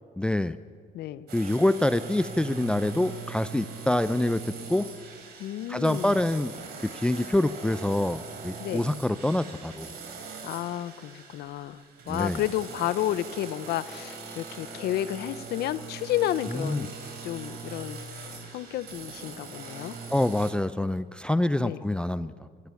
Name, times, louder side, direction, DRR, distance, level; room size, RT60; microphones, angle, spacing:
voice 1, 0.2-0.6 1.3-4.9 5.7-6.5 6.8-9.9 12.1-12.4 16.5-16.9 20.1-22.5, left 1 dB, 5° left, 13 dB, 0.4 m, -26 dB
voice 2, 0.9-1.3 5.4-6.1 8.6-8.9 10.4-11.8 12.1-16.9 17.2-20.0 21.6-21.8, left 12 dB, 70° left, 15 dB, 0.8 m, -31 dB
sound 1, 1.3-20.5, right 5 dB, 70° right, 3.7 m, -41 dB
24.0 x 11.5 x 9.7 m, 2.1 s
cardioid pair, 110°, 17 cm